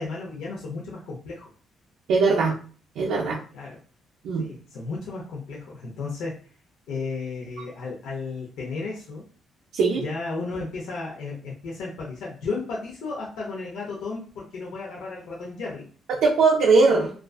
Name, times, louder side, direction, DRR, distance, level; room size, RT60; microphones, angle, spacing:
voice 1, 0.0-1.5 3.5-3.8 4.4-6.4 6.9-9.2 9.9-15.9 17.0-17.1, left 3 dB, 85° left, -4 dB, 0.6 m, -34 dB
voice 2, 2.1-2.6 3.0-3.4 4.2-4.5 9.7-10.0 16.1-17.1, right 4 dB, 85° right, -2 dB, 0.4 m, -20 dB
2.4 x 2.3 x 2.3 m, 0.42 s
cardioid pair, 90°, 0 cm